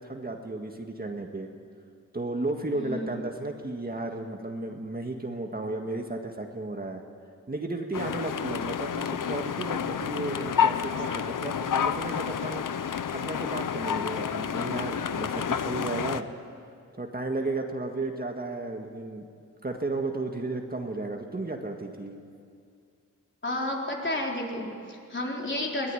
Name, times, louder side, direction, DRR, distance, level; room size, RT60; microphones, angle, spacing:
voice 1, 0.0-1.5 2.1-7.0 7.5-12.6 13.1-16.3 16.9-19.2 19.6-22.1, right 2 dB, 30° right, 3 dB, 1.9 m, -34 dB
voice 2, 2.7-3.1 23.4-25.9, left 1 dB, 35° left, -1 dB, 4.0 m, -31 dB
sound 1, 7.9-16.2, left 7 dB, 80° left, 0.9 m, -29 dB
22.5 x 18.5 x 10.0 m, 2.3 s
wide cardioid pair, 100°, 32 cm